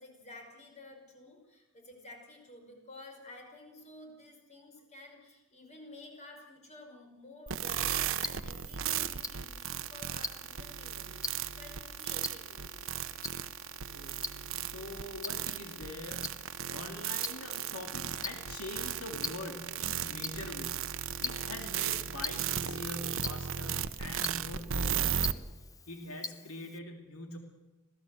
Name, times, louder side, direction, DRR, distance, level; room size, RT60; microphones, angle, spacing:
voice 1, 0.0-13.0 16.9-17.1, left 2 dB, 35° left, 3 dB, 5.6 m, -52 dB
sound 1, 7.5-25.3, right 9 dB, 65° right, 1.0 m, -35 dB
Tick-tock, 7.7-26.8, left 4 dB, 15° left, 0.7 m, -45 dB
voice 2, 13.8-20.9 21.2-25.3 25.9-27.4, left 2 dB, 80° left, 4 dB, 2.6 m, -44 dB
26.5 x 17.5 x 8.0 m, 1.1 s
head